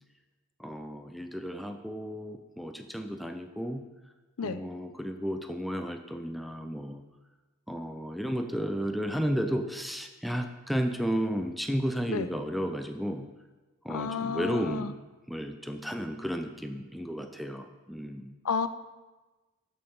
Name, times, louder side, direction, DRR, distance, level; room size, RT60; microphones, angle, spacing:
voice 1, 0.6-3.8 4.4-7.0 7.7-13.3 13.8-15.0 15.3-18.3, equal, ahead, 6 dB, 0.5 m, -33 dB
voice 2, 13.9-14.9 18.5-18.7, left 6 dB, 85° left, 12 dB, 0.6 m, -31 dB
13.5 x 5.6 x 5.4 m, 1.2 s
head